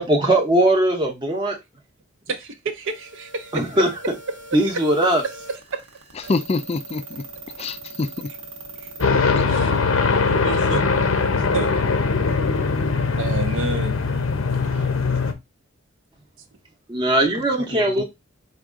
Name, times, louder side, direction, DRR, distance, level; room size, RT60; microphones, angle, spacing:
voice 1, 0.0-1.6 3.5-3.9 4.5-5.2 16.9-18.0, right 1 dB, 20° right, 0.7 m, -19 dB
voice 2, 2.3-3.8 4.5-5.9 8.8-8.9 9.5-9.7 10.2-10.8 11.5-11.8 12.4-12.5 13.1-13.9 14.7-14.9, right 3 dB, 65° right, 0.6 m, -30 dB
sound 1, 2.8-9.0, right 3 dB, 85° right, 1.0 m, -41 dB
voice 3, 6.2-7.2 7.6-8.3 9.4-9.5 17.7-18.0, left 3 dB, 30° left, 0.4 m, -26 dB
sound 2, 9.0-15.3, left 4 dB, 80° left, 0.7 m, -21 dB
4.7 x 2.3 x 3.6 m
head